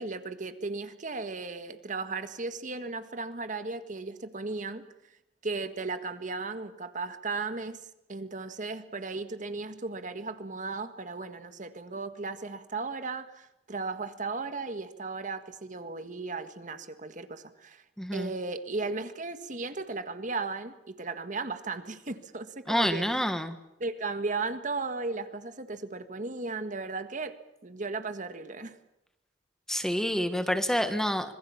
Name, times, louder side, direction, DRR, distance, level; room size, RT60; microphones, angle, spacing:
voice 1, 0.0-4.9 5.4-7.8 8.1-17.8 18.1-23.1 23.8-28.8, right 3 dB, 45° right, 9 dB, 1.7 m, -36 dB
voice 2, 18.0-18.3 22.7-23.5 29.7-31.4, equal, 5° left, 8 dB, 1.5 m, -28 dB
25.5 x 21.5 x 7.2 m, 0.87 s
head